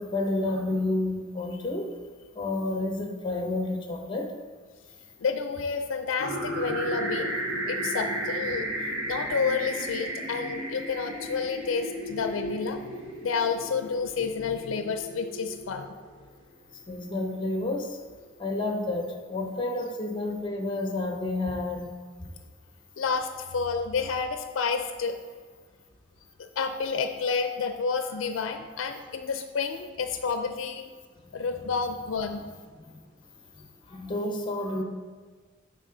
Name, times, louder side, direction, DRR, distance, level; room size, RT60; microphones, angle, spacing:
voice 1, 0.0-1.9 2.3-4.3 16.9-18.0 18.4-21.9 22.2-22.3 32.8-33.0 33.5-34.8, left 2 dB, 25° left, 3 dB, 0.7 m, -30 dB
voice 2, 5.2-7.4 7.6-8.7 9.1-12.8 13.2-15.9 23.0-25.2 26.6-30.9 31.3-32.4, left 5 dB, 85° left, 7 dB, 0.4 m, -30 dB
sound 1, 6.2-16.1, right 1 dB, 90° right, 1.4 m, -34 dB
10.0 x 3.7 x 3.8 m, 1.5 s
head